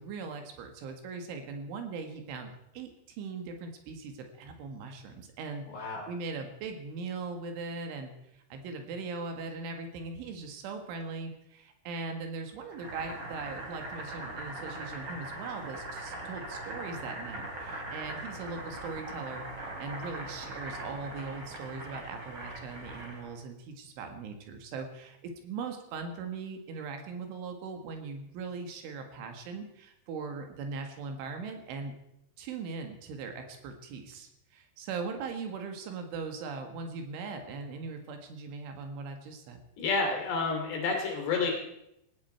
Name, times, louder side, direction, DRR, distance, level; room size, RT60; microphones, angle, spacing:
voice 1, 0.0-31.9 32.4-39.6, right 4 dB, 70° right, 5 dB, 4.0 m, -40 dB
voice 2, 5.7-6.0 39.8-41.5, left 4 dB, 60° left, 2 dB, 4.8 m, -29 dB
Boiling, 12.7-23.4, right 1 dB, 25° right, 3.7 m, -41 dB
17.5 x 17.0 x 4.5 m, 0.83 s
omnidirectional pair, 5.8 m